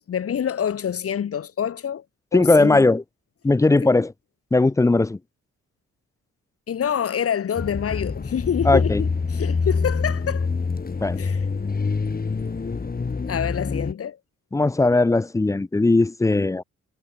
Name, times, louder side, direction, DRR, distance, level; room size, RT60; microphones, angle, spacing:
voice 1, 0.0-2.0 2.3-2.9 6.7-10.5 11.2-11.5 13.3-14.2, left 8 dB, 50° left, 1.1 m, -26 dB
voice 2, 2.3-3.0 3.4-4.1 4.5-5.2 8.7-9.0 11.0-11.2 14.5-16.6, left 2 dB, 10° left, 0.4 m, -18 dB
sound 1, 7.6-13.9, left 4 dB, 30° left, 1.9 m, -26 dB
cardioid pair, 75°, 30 cm